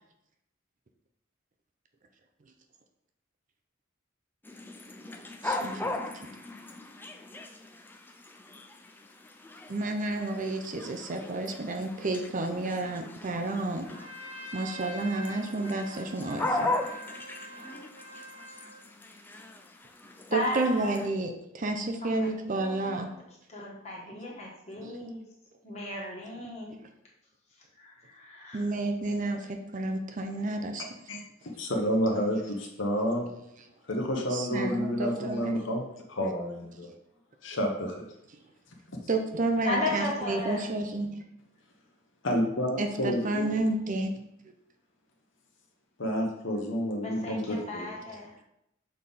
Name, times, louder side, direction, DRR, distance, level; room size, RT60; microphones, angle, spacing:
sound 1, 4.4-21.1, left 2 dB, 10° left, 0.4 m, -38 dB
voice 1, 5.4-6.0 9.7-13.9 14.5-16.7 20.3-23.1 24.8-24.9 28.5-30.8 34.3-35.5 39.1-41.1 42.8-44.1, right 2 dB, 40° right, 5 dB, 0.5 m, -30 dB
Trumpet, 13.8-18.8, equal, 80° right, 1.4 m, -45 dB
voice 2, 20.3-20.9 22.2-23.0 23.5-25.2 25.6-26.8 27.8-28.6 39.6-40.7 47.0-48.3, left 1 dB, 30° left, -3 dB, 1.5 m, -35 dB
voice 3, 31.6-33.3 33.9-35.8 36.1-36.9 37.4-38.1 42.2-43.6 46.0-47.9, equal, 60° left, 1 dB, 1.0 m, -29 dB
6.5 x 3.6 x 4.0 m, 0.80 s
head